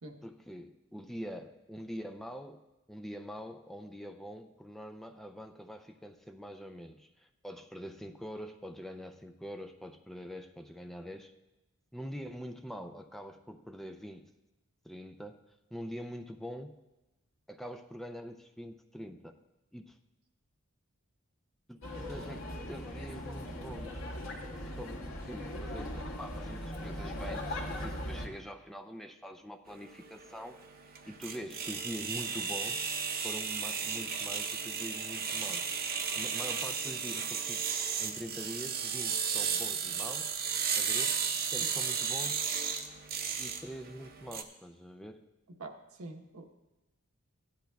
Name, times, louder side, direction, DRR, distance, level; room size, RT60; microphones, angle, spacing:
voice 1, 0.2-11.3 11.9-14.3 14.8-15.4 15.7-16.7 17.5-19.3 19.7-20.0 21.7-22.4 22.7-24.0 24.8-32.9 33.2-35.7 36.2-37.7 38.0-40.3 40.8-41.2 41.5-42.4 43.3-45.2, equal, ahead, 5 dB, 0.4 m, -44 dB
sound 1, 21.8-28.3, left 1 dB, 65° left, 1.7 m, -39 dB
sound 2, 29.7-44.4, right 6 dB, 45° right, 0.7 m, -34 dB
voice 2, 45.6-46.5, right 2 dB, 80° right, 3 dB, 1.1 m, -45 dB
16.0 x 10.5 x 2.3 m, 1.0 s
head